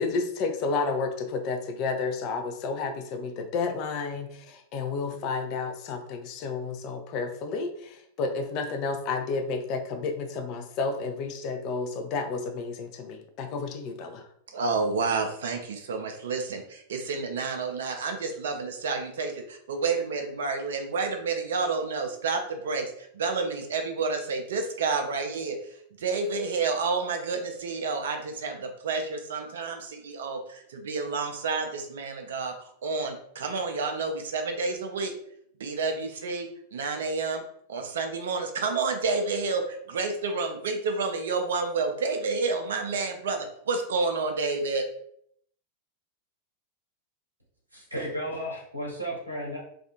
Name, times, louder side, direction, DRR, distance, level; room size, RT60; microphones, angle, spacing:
voice 1, 0.0-14.3, left 4 dB, 40° left, 5 dB, 0.4 m, -31 dB
voice 2, 14.5-32.5 32.8-35.1 35.6-37.4 37.7-44.8, right 4 dB, 60° right, 4 dB, 0.4 m, -30 dB
voice 3, 47.7-49.6, equal, 90° right, -4 dB, 0.7 m, -34 dB
2.4 x 2.3 x 2.8 m, 0.68 s
figure-of-eight pair, 90°, 0 cm